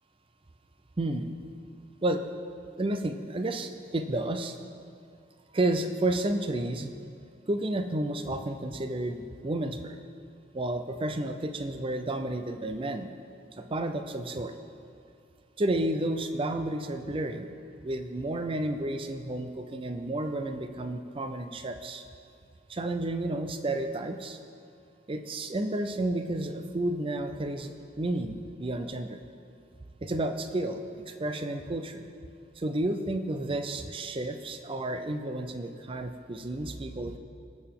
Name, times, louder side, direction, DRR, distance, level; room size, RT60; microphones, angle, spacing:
voice 1, 1.0-1.3 2.0-2.2 2.8-4.6 5.5-6.9 7.5-10.0 10.5-13.1 13.6-14.5 15.6-17.5 17.8-22.0 22.7-24.4 25.1-29.2 30.0-32.1 32.6-37.2, right 1 dB, 25° right, 7 dB, 0.5 m, -31 dB
19.5 x 6.7 x 3.7 m, 2.5 s
head